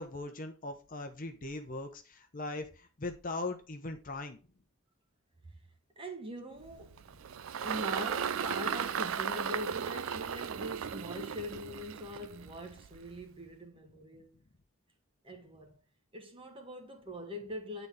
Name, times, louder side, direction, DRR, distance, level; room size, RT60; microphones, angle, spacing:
voice 1, 0.0-4.4, left 2 dB, 40° left, 0.8 m, -40 dB
voice 2, 6.0-7.0 7.6-14.4 15.2-15.7 16.1-17.9, equal, 25° right, 1.3 m, -42 dB
Engine, 6.6-13.2, right 7 dB, 80° right, 0.4 m, -36 dB
8.9 x 4.0 x 3.6 m
head